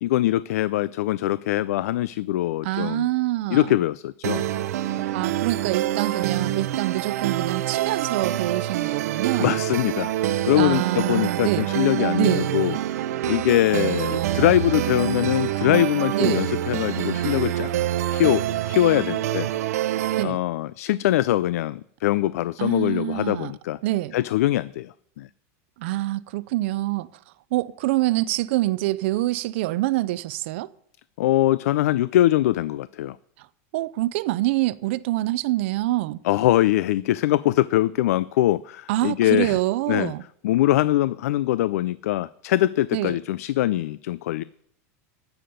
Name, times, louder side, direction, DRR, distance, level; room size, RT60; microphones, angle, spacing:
voice 1, 0.0-3.1 3.5-4.5 9.4-10.1 10.4-12.8 13.3-17.7 18.1-19.5 20.2-23.8 24.1-25.3 31.2-33.2 36.2-39.6 39.9-40.1 40.4-44.4, left 14 dB, 80° left, 0.3 m, -22 dB
voice 2, 2.6-3.8 5.1-9.6 10.5-11.7 12.2-12.5 16.1-16.4 20.2-20.4 22.6-23.5 23.8-24.2 25.8-27.1 27.5-30.7 33.4-33.5 33.7-36.2 38.9-40.2 42.9-43.2, right 17 dB, 50° right, 0.4 m, -25 dB
sound 1, 4.2-20.2, right 12 dB, 85° right, 0.7 m, -26 dB
10.0 x 7.0 x 7.8 m
supercardioid pair, 180°, 8 cm